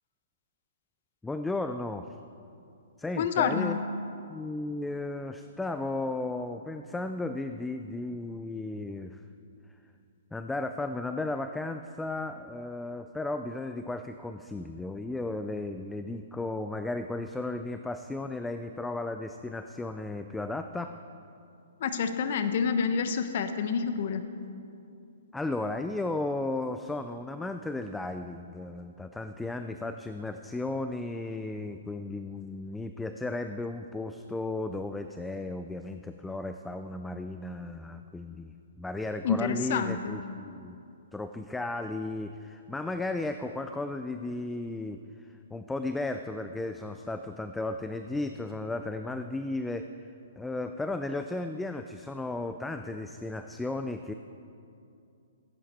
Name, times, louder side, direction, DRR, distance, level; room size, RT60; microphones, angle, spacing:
voice 1, 1.2-2.1 3.0-3.8 4.3-9.2 10.3-20.9 25.3-40.8 41.1-45.0 45.5-49.9 50.4-54.1, left 2 dB, 5° left, 8 dB, 0.3 m, -34 dB
voice 2, 3.2-3.8 21.8-24.2 39.2-40.2, left 6 dB, 55° left, 9 dB, 0.8 m, -28 dB
16.0 x 9.0 x 4.3 m, 2.6 s
hypercardioid pair, 150°, 0 cm